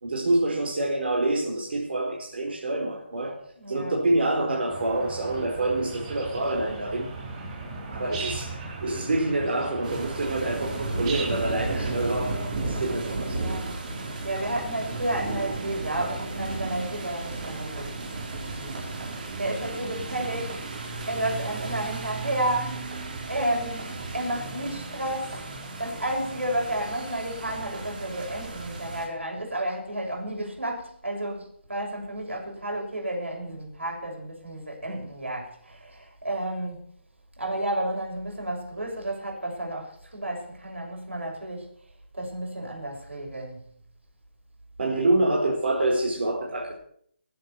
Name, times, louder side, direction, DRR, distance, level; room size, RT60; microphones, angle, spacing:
voice 1, 0.0-3.4 3.7-7.1 7.9-13.4 44.8-46.7, right 2 dB, 60° right, 4.4 m, -26 dB
voice 2, 3.6-4.0 13.1-19.0 19.4-36.8 37.4-41.7 42.1-43.6, right 1 dB, 90° right, 6.6 m, -32 dB
sound 1, 4.7-13.0, right 3 dB, 25° right, 4.9 m, -37 dB
sound 2, 9.8-29.1, right 3 dB, 45° right, 4.5 m, -34 dB
20.0 x 7.8 x 7.0 m
figure-of-eight pair, 155°, 6 cm